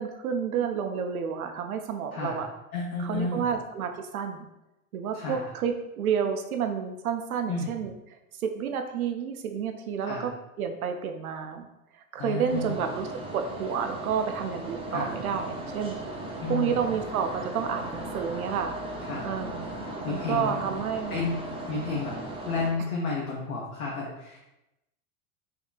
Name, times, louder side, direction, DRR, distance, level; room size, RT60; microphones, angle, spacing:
voice 1, 0.0-2.5 3.0-4.5 4.9-7.9 8.4-10.3 10.6-11.7 12.1-13.1 13.3-16.0 16.5-18.8 19.2-19.7 20.1-21.3, right 7 dB, 90° right, 6 dB, 0.5 m, -30 dB
voice 2, 2.1-2.4 2.7-3.5 5.1-5.4 7.5-7.8 10.0-10.3 12.2-12.8 14.9-15.2 16.4-16.8 19.0-19.3 20.0-20.6 21.1-21.4 21.7-22.2 22.4-24.4, left 4 dB, 90° left, -4 dB, 0.8 m, -31 dB
sound 1, 12.5-22.7, right 1 dB, 15° right, 0.5 m, -37 dB
3.7 x 2.8 x 2.4 m, 0.91 s
hypercardioid pair, 90°, 42 cm